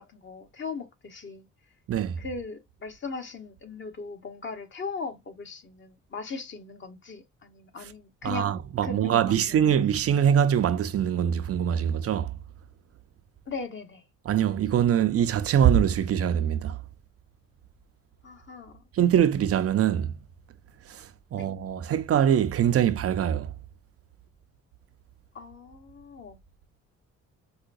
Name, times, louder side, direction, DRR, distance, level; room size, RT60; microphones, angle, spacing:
voice 1, 0.0-1.5 2.2-9.7 13.5-14.0 18.2-18.8 21.3-21.5 25.3-26.4, left 4 dB, 40° left, 1.0 m, -39 dB
voice 2, 8.2-12.3 14.3-16.8 18.9-20.1 20.9-23.5, right 9 dB, 50° right, 0.5 m, -23 dB
4.8 x 2.2 x 2.5 m
cardioid pair, 90°, 30 cm